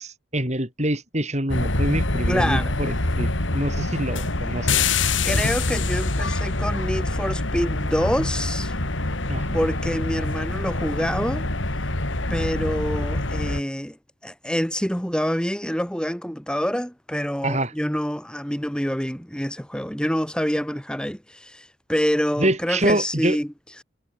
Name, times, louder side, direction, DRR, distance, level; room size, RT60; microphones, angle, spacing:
voice 1, 0.0-4.7 9.3-9.6 17.4-17.7 22.4-23.4, right 1 dB, 35° right, 6.8 m, -26 dB
sound 1, 1.5-13.6, left 2 dB, 80° left, 2.8 m, -25 dB
voice 2, 2.3-2.7 5.2-8.7 9.5-11.4 12.3-14.0 14.2-23.5, equal, 5° left, 4.9 m, -26 dB
head